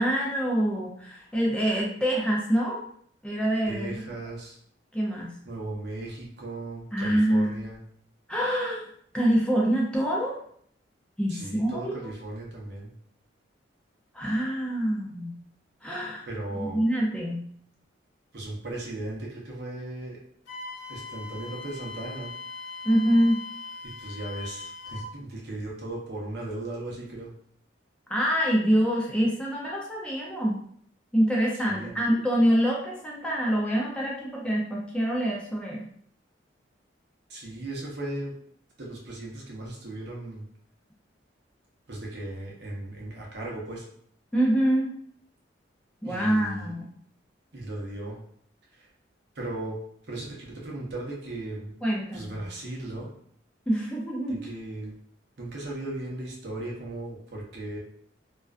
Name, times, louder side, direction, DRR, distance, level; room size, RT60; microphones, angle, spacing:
voice 1, 0.0-2.8 3.2-4.0 4.9-5.3 6.9-7.6 8.3-8.8 9.1-10.4 11.2-12.1 14.1-15.3 15.8-16.3 16.7-17.4 22.8-23.4 28.1-30.6 31.1-35.9 44.3-45.0 46.0-46.9 51.8-52.4 53.7-54.4, equal, 5° left, -4 dB, 0.4 m, -25 dB
voice 2, 3.7-4.6 5.4-7.8 11.3-12.9 16.3-16.8 18.3-20.2 20.9-22.3 23.8-27.3 31.7-32.0 37.3-38.3 38.8-40.4 41.9-43.9 46.0-46.7 47.5-48.2 48.7-48.9 49.3-49.8 50.1-51.7 52.1-53.1 54.3-54.9 55.4-57.8, right 2 dB, 60° right, -3 dB, 0.7 m, -37 dB
Wind instrument woodwind instrument, 20.5-25.1, left 4 dB, 70° left, 0.5 m, -40 dB
2.4 x 2.2 x 2.3 m, 0.63 s
head